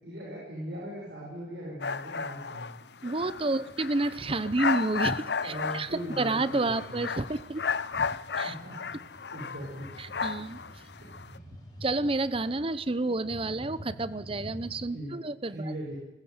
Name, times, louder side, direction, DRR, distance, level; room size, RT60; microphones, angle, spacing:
voice 1, 0.0-2.7 3.6-3.7 5.4-7.1 8.4-9.9 11.0-11.3 14.9-15.2 15.5-16.0, equal, 65° right, -3 dB, 6.3 m, -40 dB
sound 1, 1.8-11.4, left 5 dB, 70° left, 0.8 m, -34 dB
voice 2, 3.0-7.6 7.9-8.1 8.4-8.5 10.0-10.6 11.8-15.7, right 2 dB, 30° right, 16 dB, 0.8 m, -30 dB
sound 2, 3.8-14.9, equal, 25° left, 6.5 m, -49 dB
21.5 x 16.0 x 9.5 m, 1.0 s
head